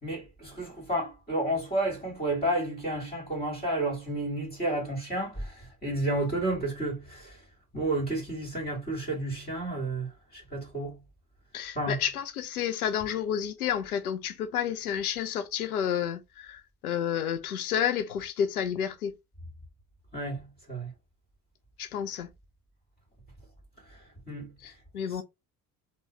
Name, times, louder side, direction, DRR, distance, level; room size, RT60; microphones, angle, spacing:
voice 1, 0.0-7.4 7.7-11.0 11.8-12.0 20.1-20.9 23.9-24.0 24.3-24.5 25.1-25.2, right 1 dB, 20° left, 2.2 m, -31 dB
voice 2, 11.5-19.1 21.8-22.3 24.6-25.2, left 9 dB, 90° left, 0.6 m, -30 dB
3.7 x 2.3 x 3.0 m
hypercardioid pair, 60°, 42 cm